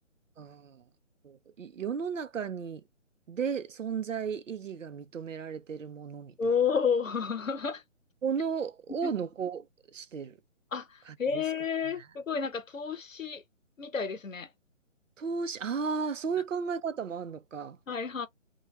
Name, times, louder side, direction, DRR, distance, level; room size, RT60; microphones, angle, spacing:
voice 1, 0.4-0.8 1.2-2.8 3.3-6.4 8.2-10.4 11.1-11.4 12.0-12.1 15.2-17.8, right 6 dB, 75° right, 0.6 m, -34 dB
voice 2, 6.4-7.8 9.0-9.1 10.7-13.4 13.8-14.5 17.9-18.3, left 6 dB, 90° left, 0.7 m, -31 dB
2.2 x 2.2 x 3.0 m
figure-of-eight pair, 145°, 38 cm